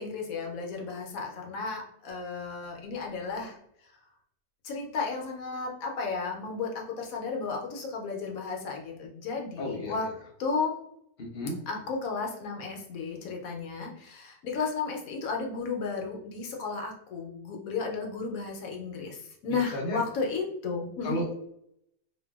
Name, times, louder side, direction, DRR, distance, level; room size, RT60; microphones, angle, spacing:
voice 1, 0.0-3.6 4.6-10.1 10.4-10.8 11.7-21.2, left 4 dB, 70° left, 1 dB, 1.0 m, -33 dB
voice 2, 9.6-9.9 11.2-11.6 19.7-20.0 21.0-21.5, equal, 55° left, 1 dB, 0.6 m, -33 dB
3.2 x 2.2 x 2.3 m, 0.73 s
omnidirectional pair, 1.6 m